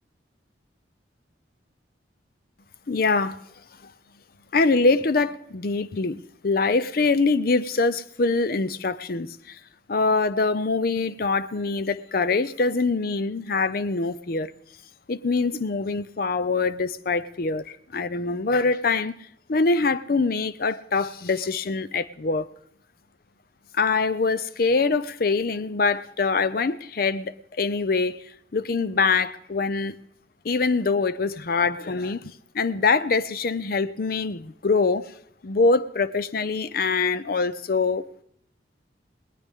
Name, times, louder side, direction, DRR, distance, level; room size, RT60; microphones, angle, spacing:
voice 1, 2.9-3.4 3.8-3.9 4.5-9.6 9.9-14.5 15.1-19.1 19.5-22.5 23.7-28.2 28.5-30.0 30.4-35.1 35.4-38.2, left 4 dB, 50° left, 0.5 m, -24 dB
19.0 x 18.5 x 3.6 m
head